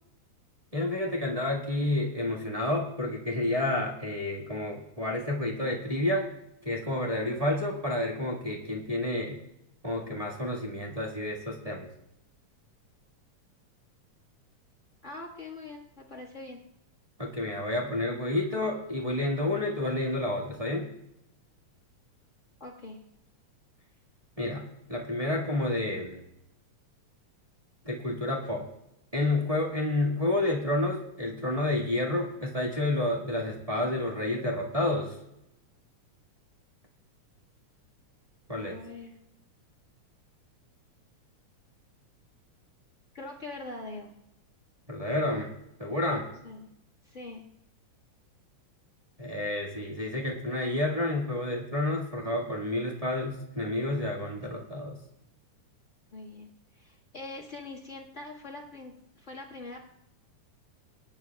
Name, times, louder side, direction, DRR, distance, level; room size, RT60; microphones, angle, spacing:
voice 1, 0.7-6.3 6.6-9.4 9.8-11.9 17.2-20.9 24.4-26.2 27.8-28.6 29.1-35.2 38.5-38.8 44.9-45.5 45.8-46.3 49.2-55.0, left 1 dB, 20° right, -3 dB, 1.1 m, -30 dB
voice 2, 15.0-16.6 22.6-23.0 38.5-39.2 43.1-44.2 46.4-46.7 47.0-47.4 56.1-56.5 56.7-59.9, left 2 dB, 35° left, -3 dB, 1.3 m, -43 dB
23.5 x 10.5 x 2.3 m, 0.83 s
omnidirectional pair, 3.5 m